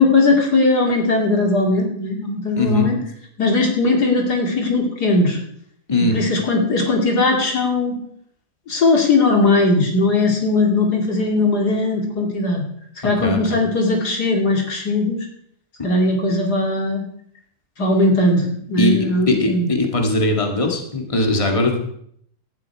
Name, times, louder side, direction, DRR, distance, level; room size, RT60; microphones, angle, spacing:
voice 1, 0.0-3.0 3.4-5.4 6.1-8.0 8.7-12.6 13.0-15.3 15.8-17.0 17.8-19.7, left 2 dB, 80° left, 1 dB, 3.3 m, -18 dB
voice 2, 2.6-2.9 5.9-6.2 13.2-13.6 18.8-21.8, left 2 dB, 20° left, 3 dB, 2.1 m, -20 dB
17.5 x 12.0 x 4.7 m, 0.68 s
omnidirectional pair, 1.7 m